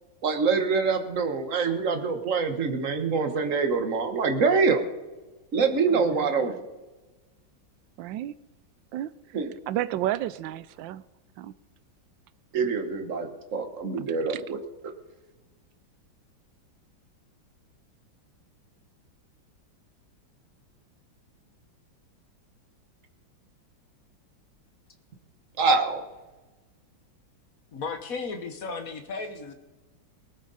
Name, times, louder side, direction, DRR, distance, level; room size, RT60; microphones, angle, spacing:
voice 1, 0.2-4.8 5.5-6.5 9.3-9.5 12.5-14.6 25.6-26.0, right 4 dB, 45° right, 1.6 m, -25 dB
voice 2, 5.9-6.6 8.0-8.3 8.9-9.1 9.7-11.0 11.4-11.5 14.3-14.4, right 13 dB, 75° right, 1.3 m, -32 dB
voice 3, 27.7-29.5, left 4 dB, 50° left, 1.6 m, -34 dB
19.5 x 12.5 x 4.1 m
omnidirectional pair, 2.2 m